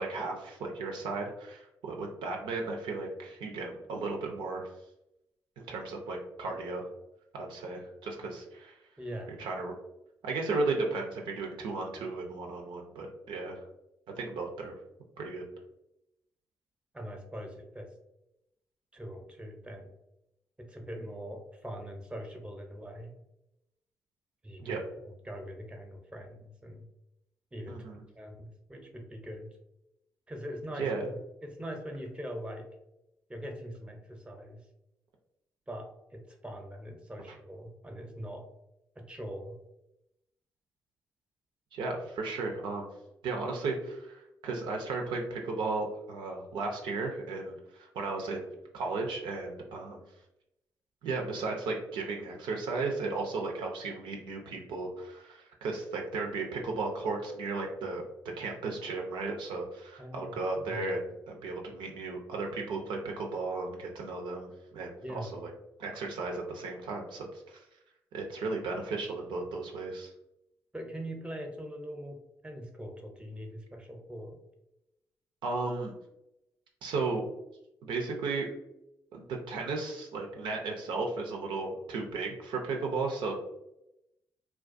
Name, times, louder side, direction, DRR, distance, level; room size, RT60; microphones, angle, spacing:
voice 1, 0.0-4.7 5.6-6.9 7.3-8.8 9.4-9.7 10.2-13.6 14.1-14.7 15.2-15.4 24.6-24.8 27.7-28.0 30.8-31.0 41.7-42.9 43.2-50.0 51.0-65.5 65.8-67.6 68.1-70.1 75.4-75.9 76.8-77.2 77.8-78.5 79.1-83.4, right 3 dB, 75° right, 1 dB, 0.4 m, -35 dB
voice 2, 9.0-9.3 16.9-17.9 18.9-19.9 20.6-23.1 24.4-26.9 27.5-27.8 28.1-29.5 30.3-30.9 31.4-32.6 33.3-34.6 35.7-38.4 39.0-39.6 60.0-60.4 60.7-60.9 65.0-65.3 70.7-72.2 72.4-74.4, equal, 10° right, 3 dB, 0.6 m, -42 dB
2.3 x 2.2 x 2.5 m, 0.85 s
hypercardioid pair, 45°, 8 cm